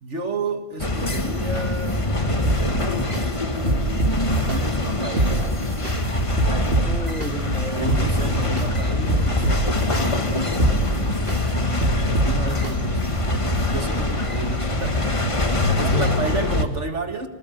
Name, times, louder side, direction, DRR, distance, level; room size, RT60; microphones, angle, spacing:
voice 1, 0.0-2.1 2.7-3.5 4.4-5.6 7.7-9.8 10.7-11.1 12.2-13.0 13.3-15.2 15.5-17.3, right 3 dB, 70° right, 6 dB, 2.2 m, -31 dB
sound 1, 0.8-16.7, left 2 dB, 25° left, 1.6 m, -23 dB
sound 2, 2.4-3.2 3.7-4.6 5.0-5.9 6.4-7.3 7.7-8.7 9.1-10.0 10.5-11.4 11.8-12.7 13.2-13.3, right 2 dB, 50° right, 2.5 m, -24 dB
voice 2, 6.8-8.1 11.0-11.5 15.8-16.1, equal, 5° left, 4 dB, 1.9 m, -33 dB
25.0 x 20.5 x 9.2 m, 1.0 s
omnidirectional pair, 1.3 m